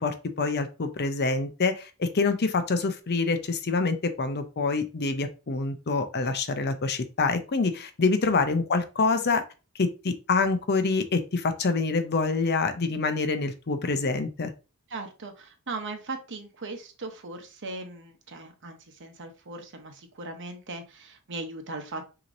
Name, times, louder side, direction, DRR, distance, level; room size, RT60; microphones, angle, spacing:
voice 1, 0.0-9.4 9.8-14.5, left 4 dB, 50° left, 8 dB, 0.6 m, -26 dB
voice 2, 14.9-22.0, right 3 dB, 55° right, 5 dB, 0.9 m, -38 dB
6.1 x 3.0 x 2.6 m, 0.31 s
head